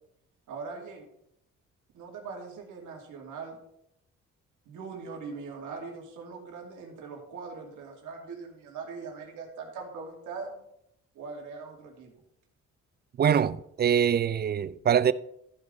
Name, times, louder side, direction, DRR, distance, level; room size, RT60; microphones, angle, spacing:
voice 1, 0.5-1.1 1.9-3.6 4.7-10.6 11.1-12.2, right 4 dB, 80° right, 2.5 m, -41 dB
voice 2, 13.2-15.1, right 8 dB, 35° right, 0.4 m, -24 dB
14.0 x 5.4 x 3.9 m
cardioid pair, 90°, 30 cm